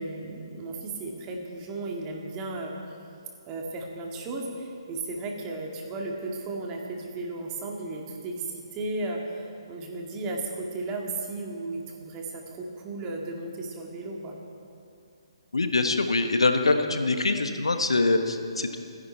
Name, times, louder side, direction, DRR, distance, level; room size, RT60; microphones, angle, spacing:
voice 1, 0.0-2.7 3.5-14.4, right 2 dB, 20° right, 0 dB, 2.2 m, -35 dB
voice 2, 15.5-18.8, left 3 dB, 80° left, 7 dB, 1.2 m, -24 dB
27.5 x 10.5 x 4.6 m, 2.5 s
figure-of-eight pair, 140°, 3 cm